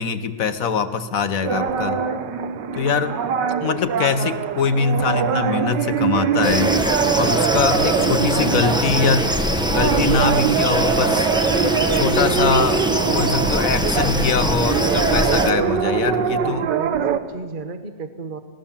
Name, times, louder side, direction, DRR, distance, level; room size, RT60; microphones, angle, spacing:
voice 1, 0.0-2.0 2.7-3.1 3.6-6.8 7.1-9.4 9.7-11.3 11.9-16.7, left 5 dB, 55° left, 10 dB, 1.3 m, -22 dB
sound 1, 1.4-17.2, right 8 dB, 85° right, 1.6 m, -23 dB
sound 2, 6.4-15.5, equal, 5° right, 0.7 m, -22 dB
voice 2, 16.0-18.4, right 4 dB, 35° right, 8 dB, 1.0 m, -34 dB
19.5 x 18.0 x 7.3 m, 1.5 s
omnidirectional pair, 1.8 m